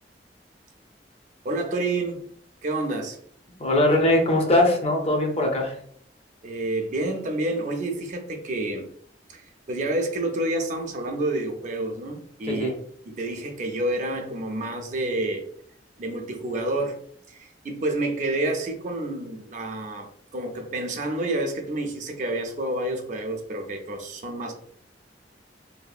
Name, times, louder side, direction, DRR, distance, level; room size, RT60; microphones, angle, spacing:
voice 1, 1.4-2.2 2.6-3.2 6.4-8.9 9.3-12.7 13.1-15.4 16.0-17.0 17.3-24.5, right 2 dB, 45° right, 4 dB, 0.4 m, -29 dB
voice 2, 3.6-5.7 12.5-12.7, left 1 dB, 35° left, 1 dB, 0.5 m, -21 dB
2.7 x 2.4 x 2.3 m, 0.62 s
head